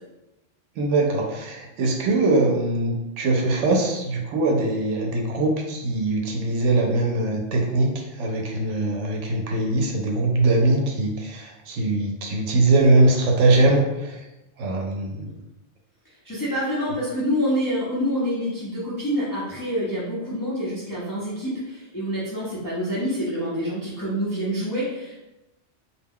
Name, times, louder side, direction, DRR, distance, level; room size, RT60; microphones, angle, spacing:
voice 1, 0.8-14.2 14.6-15.3, right 2 dB, 80° right, 1 dB, 0.9 m, -22 dB
voice 2, 16.2-25.2, equal, 25° left, -8 dB, 0.5 m, -27 dB
2.4 x 2.2 x 3.5 m, 0.97 s
omnidirectional pair, 1.2 m